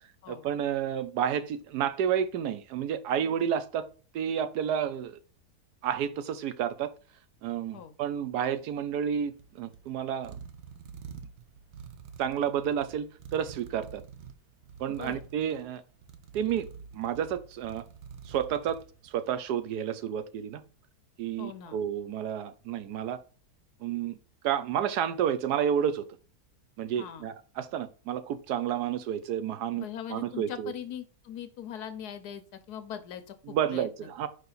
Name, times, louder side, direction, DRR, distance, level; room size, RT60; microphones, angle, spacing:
voice 1, 0.3-3.9 4.1-5.2 5.8-6.9 7.4-10.4 12.2-14.0 14.8-15.8 16.3-16.7 16.9-17.8 18.3-20.6 21.2-23.2 23.8-24.2 24.4-26.0 26.8-30.7 33.5-34.3, right 9 dB, 85° right, 1.2 m, -30 dB
sound 1, 9.1-19.5, right 6 dB, 55° right, 0.9 m, -48 dB
voice 2, 21.4-21.8 27.0-27.3 29.8-34.3, left 9 dB, 80° left, 1.3 m, -41 dB
5.0 x 4.7 x 4.0 m
omnidirectional pair, 1.7 m